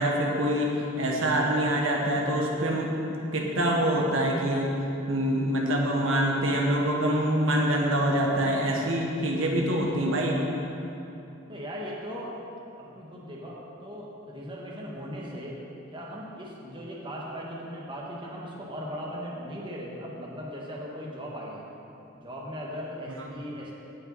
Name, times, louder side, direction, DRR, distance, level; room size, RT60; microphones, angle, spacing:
voice 1, 0.0-4.7 5.1-10.4, right 1 dB, 80° right, -1 dB, 1.3 m, -25 dB
voice 2, 11.5-12.3 12.8-15.6 15.9-21.7 22.1-23.7, equal, 25° right, -4 dB, 1.3 m, -38 dB
16.5 x 5.7 x 4.0 m, 2.8 s
head